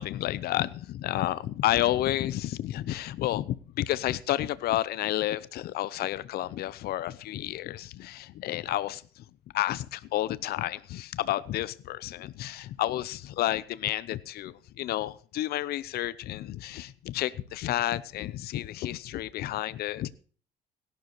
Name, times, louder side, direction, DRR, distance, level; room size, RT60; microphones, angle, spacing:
voice 1, 0.0-9.2 9.5-20.1, left 14 dB, 65° left, 18 dB, 0.7 m, -31 dB
17.5 x 12.0 x 3.1 m, 0.42 s
cardioid pair, 110°, 17 cm